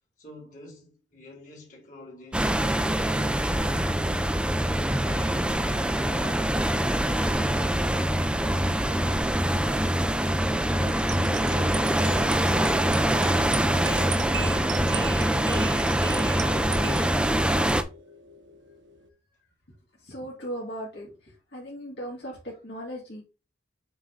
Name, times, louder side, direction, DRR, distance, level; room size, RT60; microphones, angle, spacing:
voice 1, 0.2-4.0 5.0-10.1 16.4-17.6, left 1 dB, 45° left, 2.9 m, -47 dB
sound 1, 2.3-17.8, right 1 dB, 5° right, 0.4 m, -24 dB
sound 2, 10.8-19.1, right 5 dB, 75° right, 0.9 m, -38 dB
voice 2, 20.0-23.2, equal, 65° left, 2.4 m, -38 dB
7.2 x 3.7 x 3.9 m
head